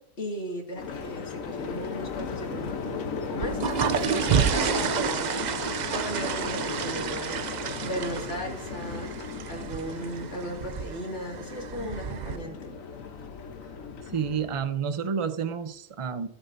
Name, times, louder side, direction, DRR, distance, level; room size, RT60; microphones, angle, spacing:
voice 1, 0.2-3.0 3.3-5.5 5.9-7.4 7.8-12.8, equal, 50° left, 0 dB, 2.5 m, -36 dB
sound 1, 0.8-14.6, left 6 dB, 75° left, 1.3 m, -36 dB
sound 2, 3.3-12.4, right 7 dB, 85° right, 0.4 m, -30 dB
voice 2, 14.0-16.3, right 6 dB, 35° right, 10 dB, 0.5 m, -30 dB
15.0 x 8.1 x 2.6 m, 0.71 s
omnidirectional pair, 1.5 m